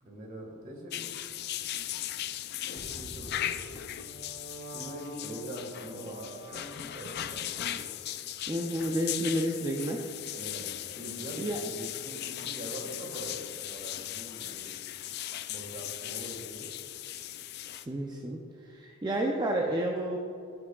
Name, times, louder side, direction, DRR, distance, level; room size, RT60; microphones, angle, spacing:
voice 1, 0.0-1.1 2.6-3.6 4.7-7.9 10.3-14.8 15.5-16.7, equal, 40° right, 0 dB, 1.7 m, -43 dB
sound 1, 0.9-17.9, left 12 dB, 50° left, 0.3 m, -38 dB
sound 2, 2.8-7.2, right 2 dB, 70° right, 1.3 m, -48 dB
voice 2, 8.5-10.0 11.4-11.6 17.7-20.2, right 1 dB, 20° right, 0 dB, 0.5 m, -31 dB
14.5 x 6.1 x 2.4 m, 2.7 s
head